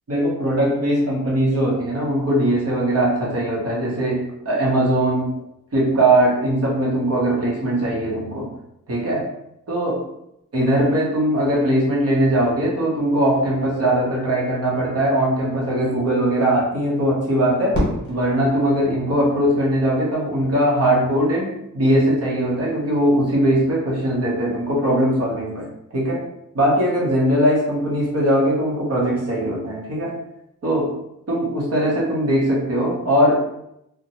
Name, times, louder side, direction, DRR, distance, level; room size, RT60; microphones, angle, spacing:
voice 1, 0.1-5.3 5.7-8.5 8.9-9.3 9.7-10.0 10.5-17.8 18.1-25.7 25.9-26.2 26.5-30.2 30.6-30.9 31.3-33.4, right 1 dB, 45° right, -4 dB, 0.8 m, -20 dB
Fireworks, 17.7-19.9, left 1 dB, 30° left, 1.1 m, -28 dB
2.6 x 2.1 x 2.8 m, 0.79 s
wide cardioid pair, 150°, 35 cm